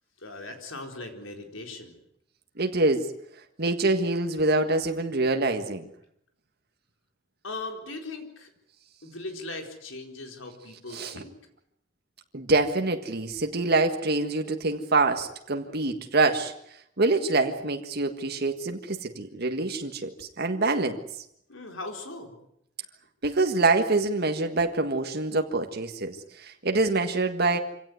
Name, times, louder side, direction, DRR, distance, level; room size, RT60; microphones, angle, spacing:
voice 1, 0.2-2.0 7.4-8.5 9.0-11.3 21.5-22.4, left 2 dB, 85° left, 4 dB, 4.3 m, -39 dB
voice 2, 2.6-3.1 3.6-5.9 10.9-11.2 12.3-16.5 17.0-21.0 23.2-27.6, right 3 dB, 55° right, 5 dB, 1.7 m, -25 dB
26.0 x 17.5 x 9.6 m, 0.75 s
head